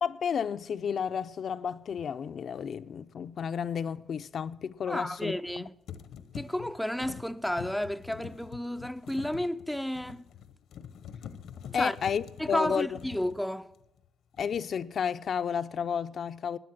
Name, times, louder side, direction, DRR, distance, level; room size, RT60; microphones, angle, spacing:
voice 1, 0.0-5.6 11.7-12.9 14.4-16.6, left 7 dB, 55° left, 0.5 m, -32 dB
sound 1, 1.9-2.1 5.2-5.6 5.9-14.1 14.4-14.8, left 8 dB, 80° left, 0.9 m, -46 dB
voice 2, 4.9-5.7 6.3-10.3 11.8-12.0 12.4-13.7, left 1 dB, ahead, 0.4 m, -32 dB
12.5 x 9.3 x 7.4 m
cardioid pair, 90°, 0 cm